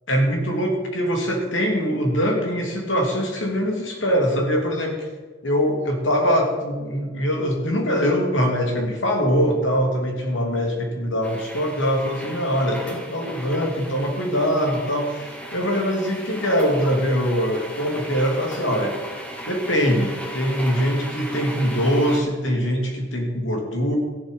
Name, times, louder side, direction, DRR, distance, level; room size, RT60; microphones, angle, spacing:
voice 1, 0.1-5.1 5.4-19.0 19.5-24.0, equal, 80° left, 2 dB, 2.9 m, -23 dB
sound 1, 11.2-22.2, right 1 dB, 10° left, 2.0 m, -36 dB
14.0 x 11.0 x 5.4 m, 1.4 s
head